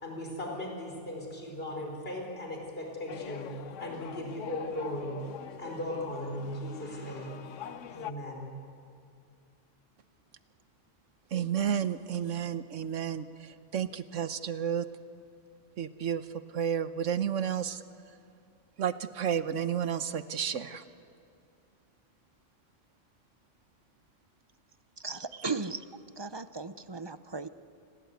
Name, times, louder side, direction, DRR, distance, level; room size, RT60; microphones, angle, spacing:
voice 1, 0.0-5.2 5.6-7.3 7.9-8.6, left 1 dB, 50° left, 0 dB, 4.9 m, -37 dB
sound 1, 3.1-8.1, left 9 dB, 85° left, 1.2 m, -44 dB
voice 2, 11.3-13.2 13.7-14.9 15.8-16.2 16.5-17.8 18.8-20.8, right 8 dB, 85° right, 12 dB, 1.3 m, -31 dB
voice 3, 25.0-25.8 26.2-27.5, right 4 dB, 25° right, 12 dB, 0.7 m, -36 dB
29.0 x 21.0 x 8.3 m, 2.4 s
omnidirectional pair, 1.2 m